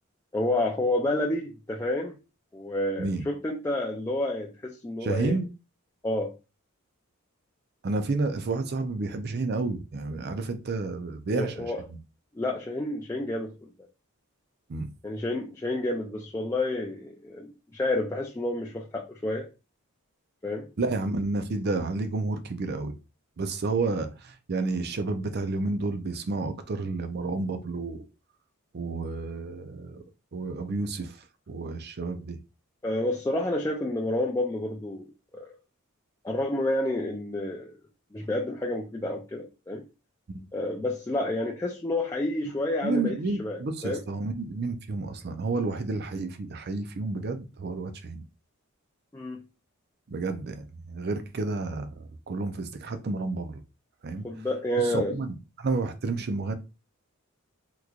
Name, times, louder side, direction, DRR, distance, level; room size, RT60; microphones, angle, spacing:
voice 1, 0.3-2.2 2.5-5.3 6.0-6.3 11.4-11.8 12.3-13.7 15.0-19.5 20.4-20.7 32.8-35.0 35.3-35.5 36.2-37.7 38.1-39.8 40.5-43.1 43.4-44.0 49.1-49.4 54.2-55.2, left 1 dB, 15° left, 0.4 m, -29 dB
voice 2, 5.0-5.5 7.8-12.0 14.7-14.9 20.8-23.0 23.4-28.1 28.7-30.0 30.3-31.2 31.5-32.4 40.3-40.4 42.8-48.2 50.1-53.6 54.0-54.2 54.8-56.5, right 3 dB, 50° right, 0.5 m, -30 dB
3.6 x 3.0 x 2.3 m
head